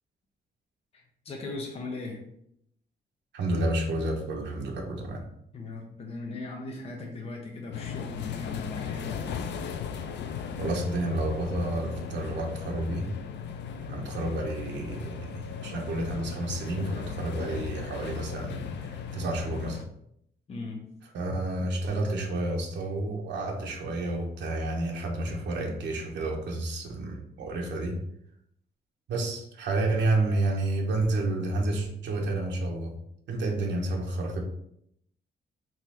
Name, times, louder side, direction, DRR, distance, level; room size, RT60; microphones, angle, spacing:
voice 1, 0.9-2.3 5.5-9.2 20.5-21.0, left 3 dB, 35° left, 0 dB, 0.7 m, -38 dB
voice 2, 3.3-5.3 10.6-13.1 13.9-19.8 21.1-28.0 29.1-33.0 33.3-34.4, right 2 dB, 85° right, 1 dB, 0.9 m, -30 dB
sound 1, 7.7-19.9, left 7 dB, 80° left, 0.4 m, -37 dB
3.8 x 3.1 x 4.3 m, 0.73 s
wide cardioid pair, 170°, 18 cm